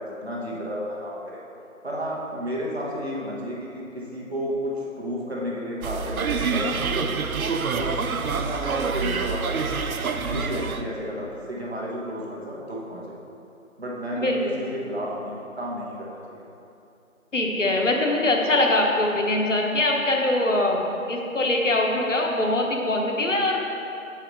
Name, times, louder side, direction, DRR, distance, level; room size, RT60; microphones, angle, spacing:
voice 1, 0.0-1.4 1.8-7.1 7.7-9.6 10.1-13.0 13.8-16.1, equal, 50° right, -4 dB, 1.3 m, -32 dB
sound 1, 5.8-10.8, right 5 dB, 90° right, 0.6 m, -27 dB
voice 2, 14.1-14.6 17.3-23.6, left 2 dB, 60° left, 0 dB, 1.0 m, -23 dB
7.4 x 4.9 x 4.5 m, 2.8 s
figure-of-eight pair, 175°, 41 cm